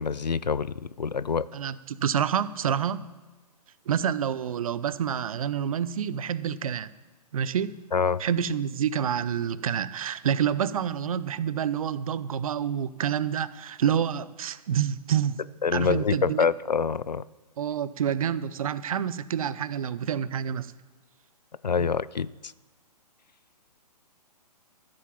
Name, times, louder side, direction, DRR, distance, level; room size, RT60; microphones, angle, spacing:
voice 1, 0.0-1.5 7.9-8.2 15.6-17.2 21.6-22.3, left 6 dB, 90° left, 0.5 m, -26 dB
voice 2, 1.5-3.1 3.9-6.9 7.3-7.8 8.2-15.4 15.7-16.5 17.6-20.7 21.8-21.9, right 8 dB, 55° right, 0.7 m, -28 dB
14.0 x 7.9 x 7.2 m
figure-of-eight pair, 130°, 21 cm